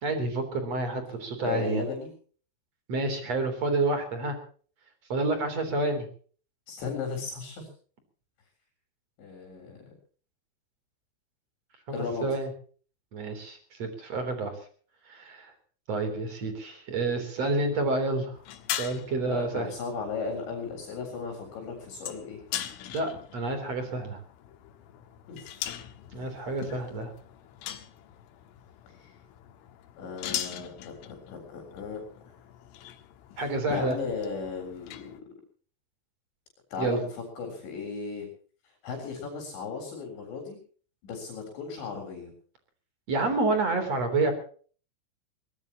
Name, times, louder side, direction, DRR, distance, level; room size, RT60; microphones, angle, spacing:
voice 1, 0.0-1.8 2.9-4.4 5.1-6.1 11.9-12.5 13.1-14.6 15.1-15.5 15.9-18.4 18.7-19.7 22.9-24.2 26.1-27.1 33.4-34.0 36.8-37.0 43.1-44.3, right 2 dB, 35° right, 7 dB, 4.1 m, -29 dB
voice 2, 1.4-2.1 6.7-7.7 9.2-9.9 11.9-12.3 19.3-22.4 25.3-25.5 28.9-29.1 30.0-32.0 33.7-35.2 36.7-38.3 38.8-40.6 41.0-42.3, left 5 dB, 65° left, 3 dB, 6.0 m, -36 dB
sound 1, 18.3-35.2, left 11 dB, 90° left, 4.0 m, -41 dB
22.5 x 19.5 x 3.0 m, 0.44 s
omnidirectional pair, 5.5 m